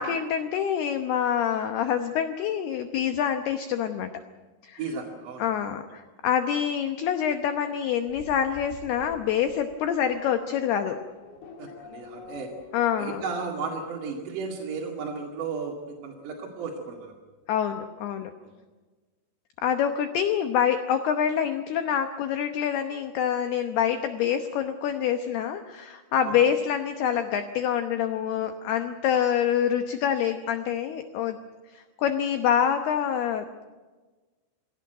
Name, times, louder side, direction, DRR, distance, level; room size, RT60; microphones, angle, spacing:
voice 1, 0.0-4.1 4.6-4.8 5.4-11.0 12.7-13.2 17.5-18.3 19.6-31.4 31.7-33.6, left 9 dB, 80° left, 7 dB, 2.3 m, -26 dB
voice 2, 4.8-5.5 11.6-12.5 13.0-17.1 18.4-18.5 26.2-26.4, right 5 dB, 50° right, -1 dB, 3.0 m, -34 dB
Race car auto racing / Accelerating revving vroom, 8.1-13.3, left 5 dB, 55° left, 3.8 m, -47 dB
23.5 x 17.5 x 9.1 m, 1.3 s
omnidirectional pair, 6.0 m